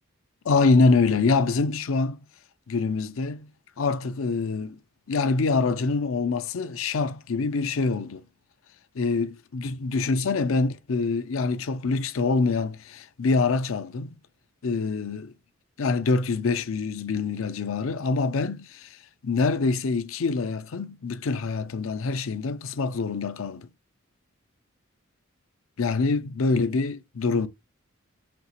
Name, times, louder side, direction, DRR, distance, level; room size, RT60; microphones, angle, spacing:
voice 1, 0.4-2.2 2.7-3.5 3.8-4.8 5.1-8.2 8.9-14.1 14.6-15.3 15.8-19.0 19.2-23.7 25.8-27.5, left 4 dB, 75° left, 0.5 m, -25 dB
5.2 x 2.9 x 3.0 m
head